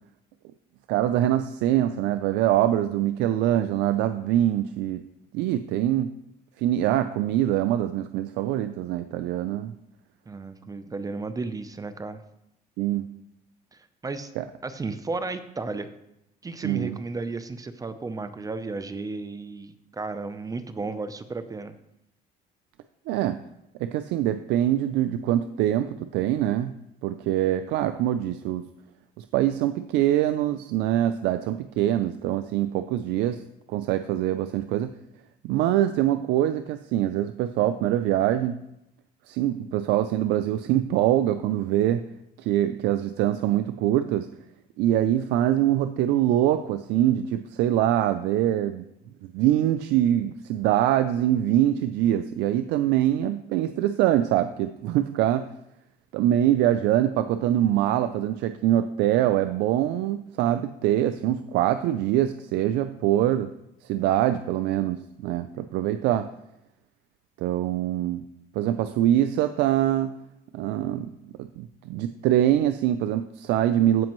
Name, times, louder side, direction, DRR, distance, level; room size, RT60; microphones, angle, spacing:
voice 1, 0.9-5.0 5.3-6.1 6.6-9.7 12.8-13.1 14.4-14.5 16.6-17.0 23.1-23.4 23.8-26.7 27.0-28.7 29.2-33.4 33.7-34.9 35.4-38.6 39.3-42.0 42.4-44.3 44.8-48.9 49.2-55.5 56.1-63.5 63.8-66.3 67.4-68.2 68.5-70.1 70.5-71.1 71.4-74.1, right 12 dB, 90° right, 10 dB, 0.4 m, -24 dB
voice 2, 10.3-12.2 13.7-14.3 14.6-15.9 16.4-21.7, right 3 dB, 20° right, 11 dB, 0.6 m, -34 dB
15.0 x 5.1 x 3.1 m, 0.84 s
cardioid pair, 110°, 17 cm